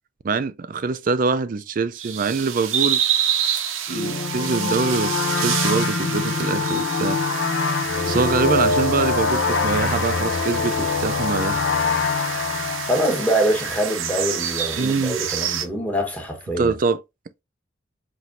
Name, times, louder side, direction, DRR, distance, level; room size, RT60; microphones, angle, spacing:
voice 1, 0.2-3.0 3.9-11.6 14.8-15.2 16.6-17.0, right 4 dB, 40° right, 0.3 m, -24 dB
sound 1, 2.0-15.7, right 9 dB, 80° right, 0.7 m, -28 dB
sound 2, 3.9-14.2, left 4 dB, 60° left, 0.6 m, -24 dB
voice 2, 12.9-16.7, right 1 dB, 10° left, 1.0 m, -24 dB
5.7 x 3.0 x 2.5 m
head